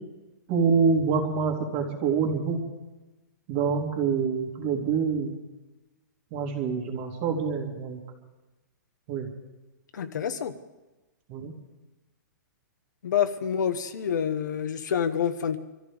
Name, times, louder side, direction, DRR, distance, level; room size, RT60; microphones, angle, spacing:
voice 1, 0.5-2.6 3.5-5.3 6.3-8.0 9.1-9.3 11.3-11.5, right 5 dB, 25° right, 2 dB, 2.8 m, -26 dB
voice 2, 9.9-10.5 13.0-15.6, left 8 dB, 65° left, 9 dB, 1.4 m, -27 dB
26.0 x 14.0 x 3.6 m, 1.1 s
hypercardioid pair, 175°, 10 cm